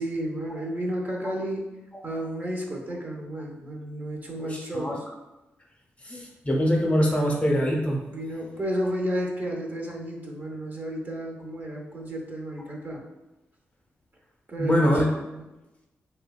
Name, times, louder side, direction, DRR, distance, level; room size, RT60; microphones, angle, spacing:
voice 1, 0.0-1.8 2.0-5.0 8.1-13.0 14.5-14.9 15.2-15.4, equal, 35° right, -1 dB, 0.6 m, -32 dB
voice 2, 4.5-5.0 6.0-8.0 14.6-15.1, equal, 25° left, -1 dB, 0.7 m, -23 dB
2.7 x 2.2 x 2.2 m, 1.0 s
supercardioid pair, 40°, 5 cm